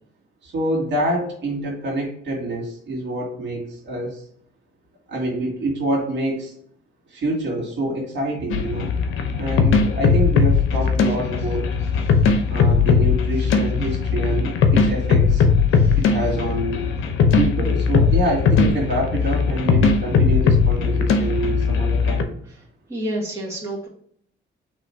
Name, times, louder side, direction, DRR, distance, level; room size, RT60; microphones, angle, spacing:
voice 1, 0.4-4.2 5.1-6.5 7.1-8.9 9.3-11.7 12.5-15.4 16.0-16.8 17.4-22.3, right 1 dB, 65° right, -2 dB, 2.0 m, -26 dB
sound 1, 8.5-22.2, left 5 dB, 85° left, 0.7 m, -19 dB
voice 2, 22.9-23.9, right 1 dB, 15° right, -5 dB, 1.7 m, -28 dB
4.0 x 3.1 x 4.3 m, 0.65 s
cardioid pair, 90°, 20 cm